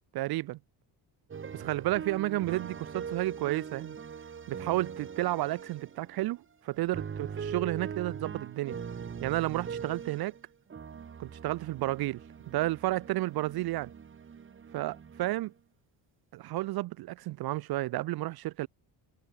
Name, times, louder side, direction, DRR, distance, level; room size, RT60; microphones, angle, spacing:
voice 1, 0.1-0.6 1.5-4.0 4.5-8.8 9.2-10.4 11.2-12.2 12.5-13.9 14.7-15.5 16.3-18.7, right 17 dB, 55° right, 0.6 m, -32 dB
amanecer chorus, 1.3-6.2 6.7-10.4 10.7-15.5, right 7 dB, 25° right, 3.7 m, -42 dB
cardioid pair, 175°, 44 cm